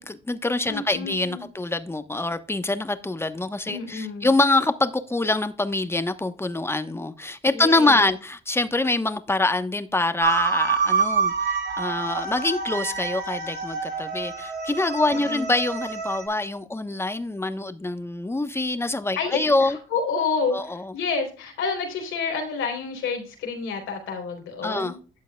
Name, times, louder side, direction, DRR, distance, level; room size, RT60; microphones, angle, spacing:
voice 1, 0.0-19.8 20.5-20.9 24.6-25.0, left 2 dB, 10° left, 1.0 m, -25 dB
voice 2, 0.7-1.5 3.7-4.3 7.5-8.1 15.1-15.5 19.2-24.9, left 5 dB, 80° left, 3.8 m, -29 dB
sound 1, 10.2-16.3, right 5 dB, 55° right, 4.7 m, -27 dB
12.5 x 8.3 x 2.3 m
cardioid pair, 90°, 20 cm